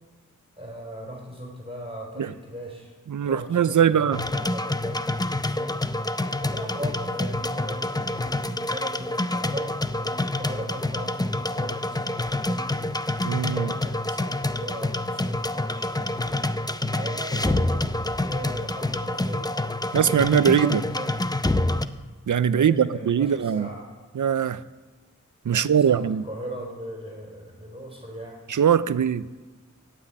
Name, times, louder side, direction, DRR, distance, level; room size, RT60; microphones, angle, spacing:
voice 1, 0.6-2.9 3.2-5.7 6.4-12.9 13.5-16.3 16.9-17.9 18.1-19.5 19.9-21.1 22.5-23.8 25.5-28.4, equal, 20° right, 3.7 m, -38 dB
voice 2, 3.1-4.2 13.2-13.7 19.9-20.8 22.3-23.7 24.2-24.6 25.4-26.2 28.5-29.3, right 8 dB, 70° right, 0.6 m, -21 dB
sound 1, 4.1-21.9, left 2 dB, 15° left, 0.6 m, -27 dB
17.0 x 6.2 x 8.8 m
wide cardioid pair, 60°, 31 cm